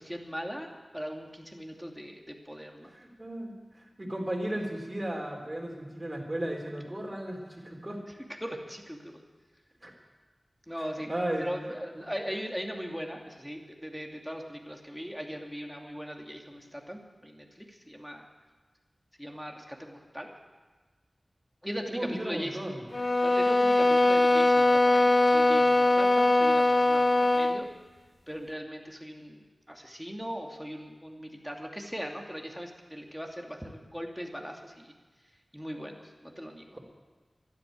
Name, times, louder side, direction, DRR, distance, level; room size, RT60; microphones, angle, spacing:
voice 1, 0.0-2.9 8.4-9.2 10.7-11.1 11.4-18.2 19.2-20.3 21.6-22.6 23.2-27.6 28.3-34.9 35.5-36.7, equal, ahead, 2 dB, 2.7 m, -39 dB
voice 2, 2.9-8.0 9.8-9.9 11.0-11.5 11.9-12.0 21.9-22.8, right 1 dB, 30° right, 0 dB, 4.2 m, -35 dB
sound 1, 22.9-27.7, left 2 dB, 50° left, 0.9 m, -22 dB
12.5 x 12.0 x 9.3 m, 1.3 s
cardioid pair, 45°, 0 cm